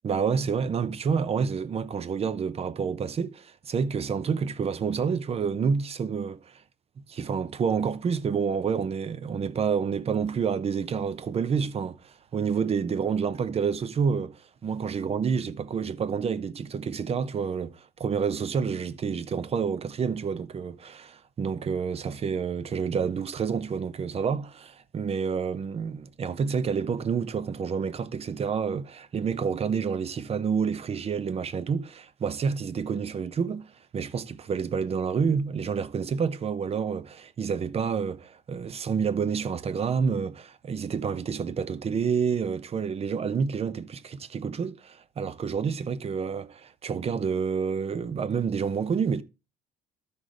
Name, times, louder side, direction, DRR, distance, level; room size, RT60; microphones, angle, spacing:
voice 1, 0.0-6.6 7.1-49.2, right 6 dB, 35° right, 0.8 m, -29 dB
12.5 x 5.1 x 3.8 m
cardioid pair, 110°, 17 cm